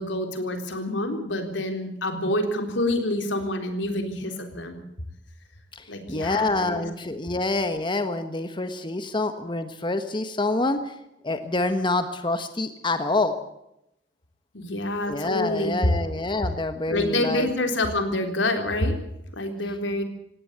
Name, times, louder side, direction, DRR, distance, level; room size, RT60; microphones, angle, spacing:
voice 1, 0.0-4.8 5.9-6.9 14.5-15.9 16.9-19.0 19.3-20.0, left 1 dB, 90° left, 6 dB, 3.9 m, -27 dB
voice 2, 6.1-10.9 11.2-13.4 15.1-17.5, left 2 dB, 25° left, 8 dB, 1.4 m, -27 dB
18.5 x 17.5 x 8.1 m, 0.81 s
head